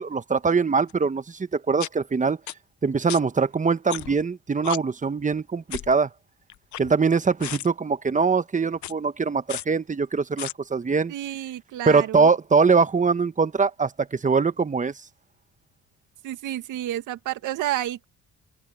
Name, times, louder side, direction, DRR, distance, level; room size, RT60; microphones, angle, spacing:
voice 1, 0.0-2.4 2.8-6.1 6.8-11.1 11.9-14.9, right 5 dB, 25° right, 1.1 m, -22 dB
sound 1, 0.9-1.0 1.8-1.9 2.5-2.6 3.1-3.2 3.9-4.2 4.6-4.8 5.7-5.9 6.5-7.1 7.4-7.7 8.8-8.9 9.5-9.6 10.4-10.5, left 13 dB, 70° left, 0.9 m, -33 dB
voice 2, 11.1-12.3 16.2-18.0, right 13 dB, 90° right, 2.2 m, -30 dB
cardioid pair, 90°, 30 cm